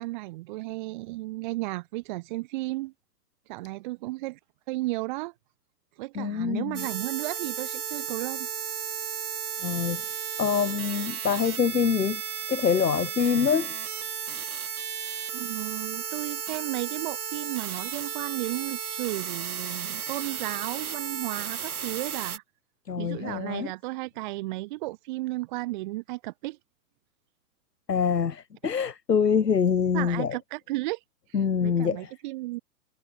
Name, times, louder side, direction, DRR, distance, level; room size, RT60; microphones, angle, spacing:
voice 1, 0.0-2.9 3.5-4.4 4.7-5.3 6.0-8.5 15.3-22.4 23.0-26.6 29.9-32.6, right 20 dB, 30° right, 1.1 m, -34 dB
voice 2, 6.2-6.9 9.6-12.2 12.5-13.7 22.9-23.7 27.9-30.3 31.3-32.1, left 6 dB, 90° left, 0.7 m, -25 dB
sound 1, 6.7-22.4, right 8 dB, 65° right, 1.5 m, -34 dB
figure-of-eight pair, 115°, 47 cm